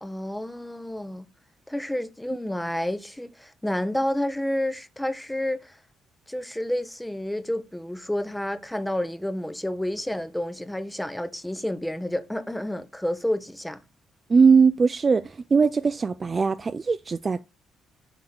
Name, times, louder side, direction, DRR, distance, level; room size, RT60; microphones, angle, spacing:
voice 1, 0.0-1.3 1.7-5.7 6.3-13.8, left 1 dB, 5° left, 0.6 m, -30 dB
voice 2, 14.3-17.4, right 5 dB, 25° right, 0.3 m, -20 dB
7.8 x 3.5 x 6.5 m
cardioid pair, 165°, 0 cm